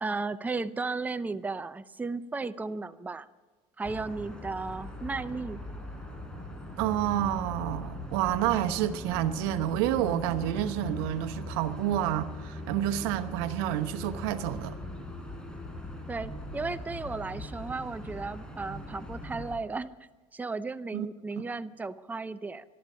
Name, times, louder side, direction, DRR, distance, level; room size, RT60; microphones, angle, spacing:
voice 1, 0.0-3.3 3.8-5.6 16.1-19.9 20.3-22.6, right 3 dB, 15° right, 0.6 m, -35 dB
sound 1, 3.8-19.6, left 1 dB, 5° left, 4.1 m, -40 dB
voice 2, 6.8-14.7 20.9-21.1, right 12 dB, 85° right, 1.0 m, -29 dB
20.0 x 13.0 x 5.5 m
supercardioid pair, 100°, 13 cm